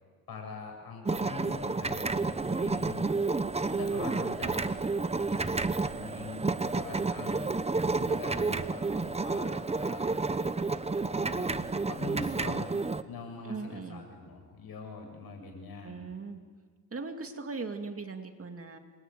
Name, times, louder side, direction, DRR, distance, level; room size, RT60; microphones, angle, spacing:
voice 1, 0.3-3.1 3.6-4.9 5.2-7.5 8.0-10.2 11.0-12.7 13.1-16.0, left 3 dB, 85° left, 3 dB, 7.1 m, -43 dB
sound 1, 1.1-13.0, right 3 dB, 20° right, 0.9 m, -30 dB
voice 2, 13.4-14.1 15.8-16.4 16.9-18.8, right 4 dB, 40° right, 5 dB, 2.5 m, -39 dB
27.0 x 23.0 x 9.3 m, 1.5 s
wide cardioid pair, 125°, 36 cm